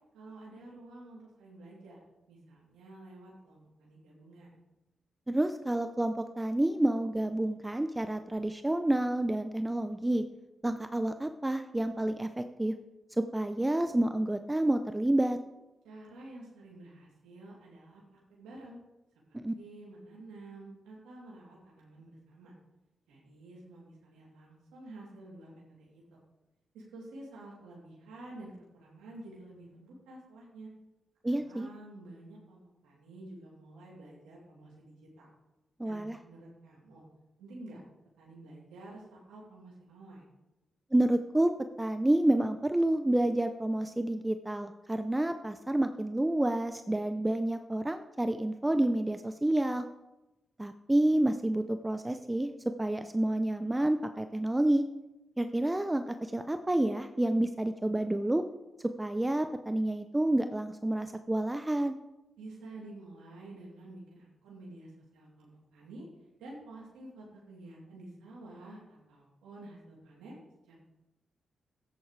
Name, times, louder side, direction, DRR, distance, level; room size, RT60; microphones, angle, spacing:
voice 1, 0.1-2.0 2.3-4.6 15.8-18.8 19.5-22.5 23.1-26.2 26.7-30.7 31.2-35.3 35.8-37.0 37.4-37.8 38.2-40.3 62.4-66.0 66.4-70.4 70.7-70.8, right 2 dB, 85° right, -5 dB, 3.4 m, -50 dB
voice 2, 5.3-10.2 10.6-12.7 13.2-15.4 19.3-19.5 31.2-31.7 35.8-36.2 40.9-41.5 41.8-49.9 50.6-52.5 52.8-54.9 55.4-58.4 59.0-61.9, right 1 dB, 20° right, 8 dB, 0.7 m, -29 dB
13.5 x 10.0 x 3.4 m, 1.0 s
supercardioid pair, 40°, 0 cm